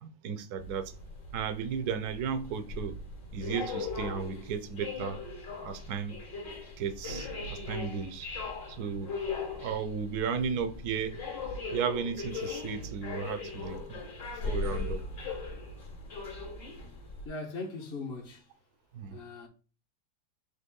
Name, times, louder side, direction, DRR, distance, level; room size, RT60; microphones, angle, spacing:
voice 1, 0.0-0.9 1.3-3.0 3.3-5.2 5.6-6.1 6.8-8.3 8.7-9.1 9.5-11.2 11.7-14.1 14.3-15.0 18.9-19.2, right 7 dB, 55° right, 1.2 m, -34 dB
sound 1, 0.6-17.3, left 3 dB, 55° left, 2.7 m, -39 dB
voice 2, 17.2-18.4 19.1-19.5, left 3 dB, 35° left, 1.4 m, -39 dB
8.0 x 3.6 x 3.7 m
omnidirectional pair, 2.3 m